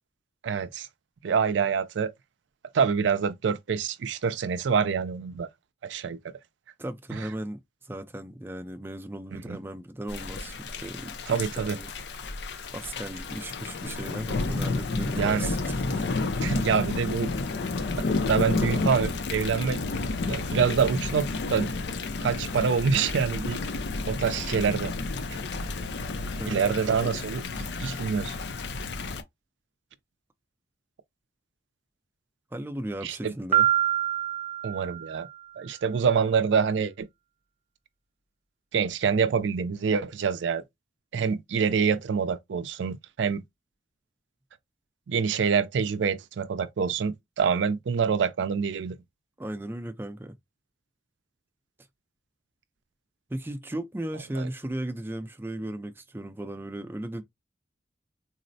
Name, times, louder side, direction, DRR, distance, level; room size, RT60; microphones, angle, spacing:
voice 1, 0.4-0.9 1.2-2.1 2.7-5.5 5.8-6.2 7.1-7.2 9.5-9.6 11.3-11.8 15.1-15.5 16.4-17.3 18.0-19.8 20.3-21.7 22.2-23.6 24.0-24.9 26.5-27.4 27.8-28.3 33.0-33.3 34.6-35.3 35.6-37.1 38.7-40.6 41.1-43.4 45.1-49.0 54.4-54.5, right 6 dB, 90° right, 0.4 m, -26 dB
voice 2, 6.8-11.9 12.7-16.2 26.4-27.1 27.4-27.7 32.5-33.7 49.4-50.4 53.3-57.2, right 1 dB, 10° right, 0.4 m, -36 dB
Thunder / Rain, 10.1-29.2, left 3 dB, 70° left, 0.5 m, -31 dB
Piano, 33.5-35.4, right 11 dB, 35° right, 0.7 m, -25 dB
4.0 x 2.0 x 2.6 m
head